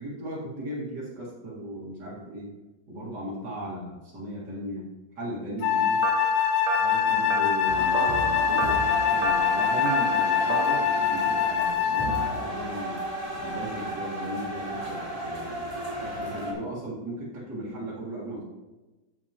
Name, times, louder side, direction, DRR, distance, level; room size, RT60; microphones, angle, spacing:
voice 1, 0.0-2.6 2.9-4.9 5.1-6.0 6.8-13.0 13.4-18.4, right 1 dB, 45° right, -5 dB, 1.4 m, -37 dB
Wind instrument woodwind instrument, 5.6-12.4, left 8 dB, 80° left, 2.6 m, -24 dB
sound 1, 6.0-10.8, right 6 dB, 85° right, 2.8 m, -33 dB
sound 2, 7.7-16.5, right 1 dB, 10° right, 1.8 m, -34 dB
14.0 x 6.5 x 2.9 m, 1.1 s
omnidirectional pair, 4.8 m